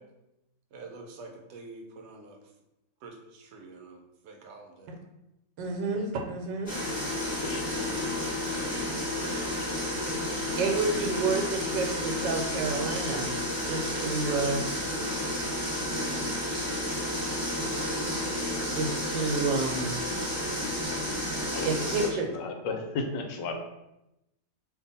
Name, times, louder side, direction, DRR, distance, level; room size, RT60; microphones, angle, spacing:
voice 1, 0.7-2.4 3.0-4.9, right 3 dB, 70° right, 3 dB, 1.1 m, -47 dB
voice 2, 5.6-6.7 10.6-13.3 13.7-14.6 18.7-19.9 21.6-22.3, right 4 dB, 90° right, 2 dB, 1.3 m, -29 dB
sound 1, 6.7-22.1, left 1 dB, 15° left, 1.2 m, -31 dB
voice 3, 7.4-7.9 9.6-9.9 21.5-23.5, left 4 dB, 80° left, 4 dB, 1.2 m, -36 dB
2.8 x 2.6 x 3.9 m, 0.90 s
omnidirectional pair, 1.9 m